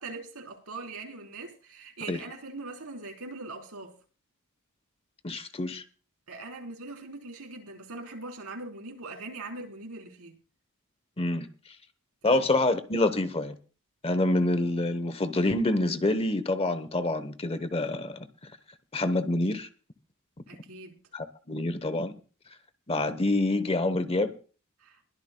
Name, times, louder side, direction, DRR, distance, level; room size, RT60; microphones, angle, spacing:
voice 1, 0.0-4.0 6.3-10.4 12.2-12.4 20.5-21.0 24.8-25.0, right 3 dB, 85° right, 3.7 m, -41 dB
voice 2, 5.2-5.8 11.2-11.5 12.2-13.6 14.0-18.3 18.9-19.7 21.1-22.1 22.9-24.3, left 2 dB, 25° left, 0.9 m, -27 dB
22.0 x 13.0 x 2.2 m
head